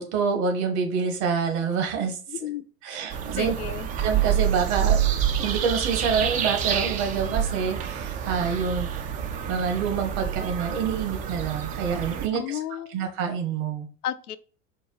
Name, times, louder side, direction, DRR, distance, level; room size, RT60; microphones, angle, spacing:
voice 1, 0.0-2.2 2.8-3.5 4.0-5.0 5.4-8.9 9.5-12.6 12.9-13.9, right 6 dB, 50° right, 1.4 m, -27 dB
voice 2, 2.3-3.9 12.3-13.1 14.0-14.4, left 11 dB, 75° left, 0.6 m, -34 dB
sound 1, 3.1-12.3, right 9 dB, 20° right, 0.4 m, -27 dB
4.6 x 2.3 x 4.5 m
figure-of-eight pair, 85°, 46 cm